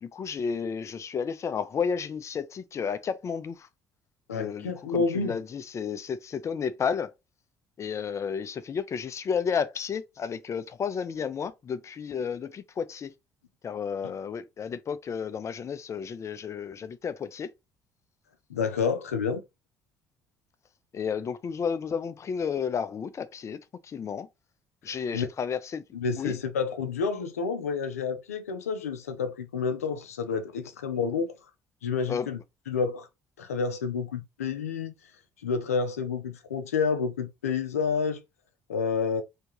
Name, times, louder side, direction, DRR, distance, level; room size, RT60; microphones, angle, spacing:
voice 1, 0.0-3.7 4.3-7.1 7.8-13.1 13.6-17.5 20.9-24.3 24.8-25.8 26.2-26.4 32.1-32.3, left 6 dB, 40° left, 0.5 m, -32 dB
voice 2, 4.3-5.4 14.0-14.1 18.5-19.4 24.9-25.3 25.9-31.3 31.8-32.4 32.7-33.1 33.4-34.9 35.4-38.2 38.7-39.2, left 5 dB, 85° left, 0.5 m, -29 dB
3.4 x 2.8 x 2.9 m
hypercardioid pair, 50°, 8 cm